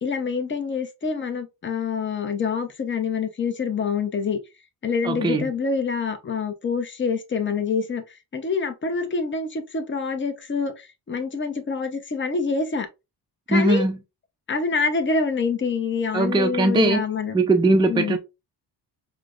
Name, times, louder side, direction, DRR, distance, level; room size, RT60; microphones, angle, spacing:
voice 1, 0.0-4.4 4.8-8.0 8.3-12.9 13.5-13.8 14.5-17.3 17.9-18.2, left 5 dB, 30° left, 0.7 m, -26 dB
voice 2, 5.0-5.5 13.5-14.0 16.1-17.0 17.3-18.2, right 2 dB, 10° right, 0.4 m, -20 dB
5.0 x 2.1 x 2.4 m
cardioid pair, 105°, 42 cm